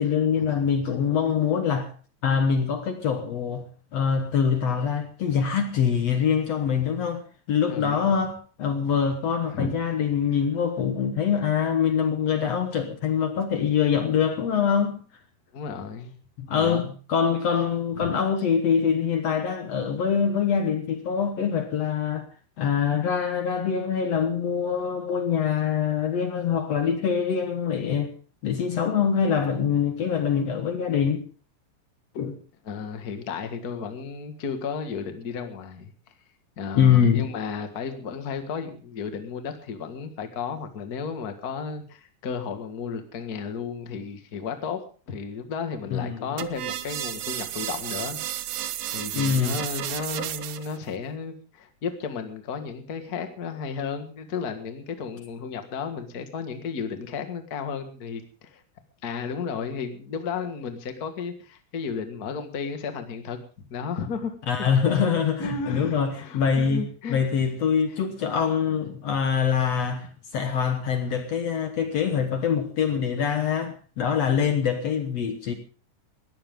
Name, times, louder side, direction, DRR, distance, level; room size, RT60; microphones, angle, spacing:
voice 1, 0.0-1.9 2.2-7.2 7.5-15.0 16.4-22.3 22.6-28.1 28.4-31.3 32.2-32.4 36.7-37.3 45.9-46.3 49.1-49.6 64.5-75.5, left 7 dB, 60° left, 2.2 m, -24 dB
voice 2, 7.7-8.1 9.5-9.7 15.5-16.1 16.5-16.9 17.9-18.1 32.7-35.9 36.6-44.8 45.1-48.2 48.5-58.6 59.0-63.4 63.7-64.7 65.1-67.2 67.9-68.0, left 6 dB, 35° left, 1.7 m, -33 dB
sound 1, 46.4-50.8, right 13 dB, 80° right, 2.5 m, -32 dB
20.0 x 15.0 x 3.7 m
omnidirectional pair, 3.8 m